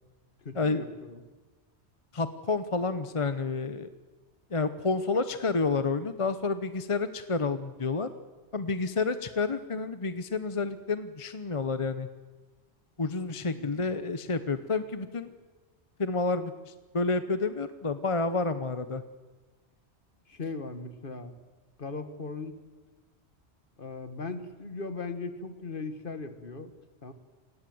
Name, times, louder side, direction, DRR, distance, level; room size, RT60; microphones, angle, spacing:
voice 1, 0.4-1.2 13.5-13.9 20.3-21.3 21.8-22.6 23.8-26.7 27.0-27.1, left 3 dB, 50° left, 10 dB, 1.8 m, -38 dB
voice 2, 2.1-3.9 4.5-8.1 8.5-12.1 13.0-15.3 16.0-19.0, left 3 dB, 30° left, 11 dB, 0.9 m, -29 dB
28.0 x 18.5 x 7.8 m, 1.3 s
omnidirectional pair, 1.2 m